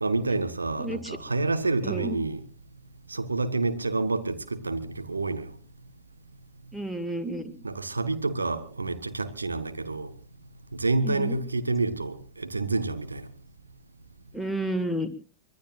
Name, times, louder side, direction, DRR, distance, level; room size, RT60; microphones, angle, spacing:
voice 1, 0.0-2.4 3.1-5.5 7.6-10.1 10.7-13.3, right 3 dB, 80° right, 1.4 m, -28 dB
voice 2, 0.8-1.2 1.8-2.2 6.7-7.5 11.0-11.4 14.3-15.1, right 1 dB, ahead, 2.0 m, -31 dB
24.5 x 20.0 x 2.5 m
figure-of-eight pair, 90°, 0 cm